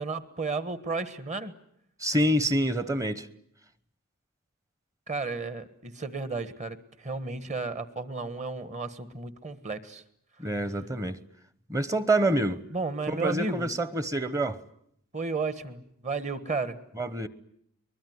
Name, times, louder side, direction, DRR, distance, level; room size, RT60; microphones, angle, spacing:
voice 1, 0.0-1.5 5.1-10.0 12.7-13.7 15.1-16.8, right 3 dB, 35° right, 1.4 m, -33 dB
voice 2, 2.0-3.3 10.4-11.2 11.7-12.6 13.1-14.6 16.9-17.3, right 1 dB, 15° right, 1.0 m, -26 dB
23.5 x 21.0 x 9.5 m
head